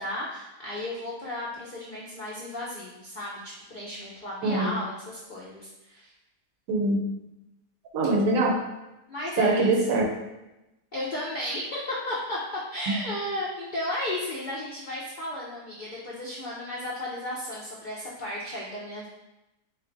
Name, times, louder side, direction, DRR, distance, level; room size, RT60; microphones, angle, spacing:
voice 1, 0.0-6.1 9.1-10.0 10.9-12.4 12.7-19.1, left 1 dB, 65° left, -5 dB, 0.5 m, -34 dB
voice 2, 4.4-4.8 6.7-7.0 7.9-8.6 9.4-10.1 12.9-13.0, right 2 dB, 75° right, 2 dB, 1.1 m, -23 dB
3.3 x 2.5 x 3.8 m, 0.96 s
omnidirectional pair, 1.6 m